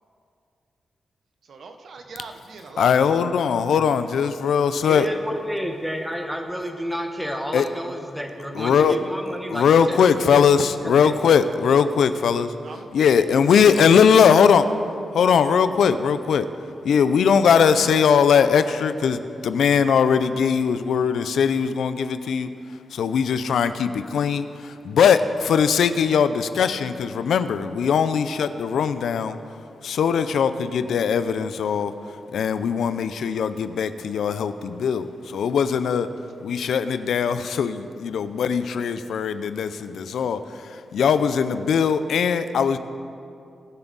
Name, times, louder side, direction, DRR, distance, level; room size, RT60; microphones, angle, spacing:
voice 1, 1.5-2.9 12.6-13.1 13.7-13.9, right 4 dB, 55° right, 6 dB, 0.9 m, -40 dB
voice 2, 2.8-5.1 7.5-7.7 8.5-9.0 9.5-12.5 12.9-14.7 15.1-16.5 16.8-22.5 22.9-29.4 29.8-31.9 32.3-36.1 36.4-42.8, left 7 dB, 80° left, 12 dB, 0.5 m, -20 dB
voice 3, 4.8-10.4 10.8-11.1, equal, ahead, 3 dB, 1.0 m, -30 dB
21.0 x 7.1 x 4.0 m, 2.5 s
wide cardioid pair, 160°, 0 cm